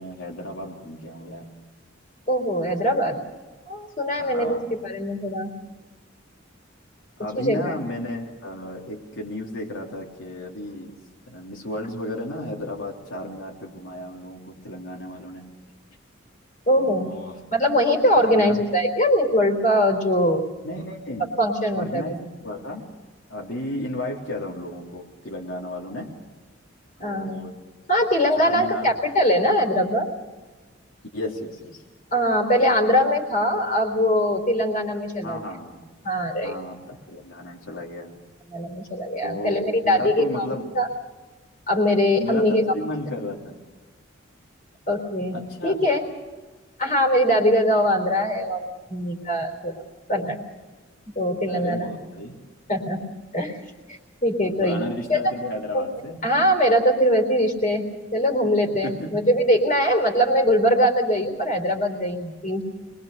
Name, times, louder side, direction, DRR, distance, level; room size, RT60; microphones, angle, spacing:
voice 1, 0.0-1.6 4.2-4.7 7.2-10.9 11.3-15.5 16.8-17.7 18.2-18.6 20.6-21.3 21.7-22.9 23.3-26.2 27.0-27.5 28.0-28.1 28.4-28.9 31.1-31.8 35.2-35.8 36.4-38.1 39.2-40.7 42.2-43.6 45.3-45.8 51.5-52.4 54.4-56.3 58.8-59.3, left 1 dB, 75° left, -3 dB, 3.4 m, -34 dB
voice 2, 2.3-3.2 3.7-5.5 7.3-7.7 16.7-17.1 17.5-20.4 21.4-22.0 27.0-27.4 27.9-30.1 32.1-35.4 36.0-36.5 38.5-40.5 40.7-40.9 41.7-42.7 44.9-45.4 45.6-46.0 46.8-49.8 50.1-50.4 51.2-51.9 52.7-53.0 53.3-53.6 53.9-55.2 55.7-55.9 56.2-57.8 58.1-62.6, equal, 40° left, 2 dB, 3.7 m, -22 dB
25.0 x 21.5 x 6.7 m, 1.3 s
head